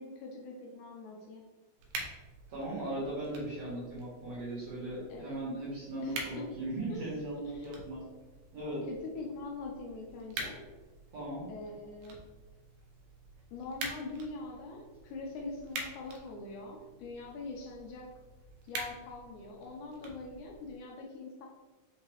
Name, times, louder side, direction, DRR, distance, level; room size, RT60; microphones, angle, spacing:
voice 1, 0.0-1.5 5.1-5.4 6.0-6.4 6.9-7.0 7.5-7.7 8.9-10.6 11.5-12.2 13.5-18.1 18.7-21.5, left 3 dB, 80° left, 0 dB, 1.9 m, -43 dB
sound 1, 1.8-20.8, right 2 dB, 85° right, 2.2 m, -47 dB
voice 2, 2.5-8.0 8.5-8.8 11.1-11.5, right 1 dB, 65° right, -7 dB, 1.9 m, -38 dB
5.4 x 2.9 x 2.9 m, 1.2 s
omnidirectional pair, 3.7 m